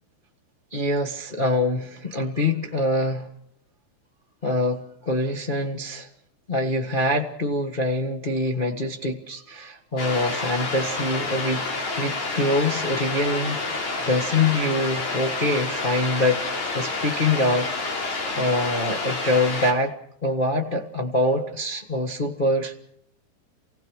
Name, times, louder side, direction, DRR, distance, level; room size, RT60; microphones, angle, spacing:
voice 1, 0.7-3.3 4.4-4.8 5.0-6.1 6.5-11.6 12.0-19.9 20.2-22.8, left 2 dB, 35° left, 0 dB, 0.8 m, -25 dB
sound 1, 10.0-19.7, left 3 dB, 65° left, 4.6 m, -29 dB
29.0 x 17.5 x 6.4 m, 0.72 s
omnidirectional pair, 3.6 m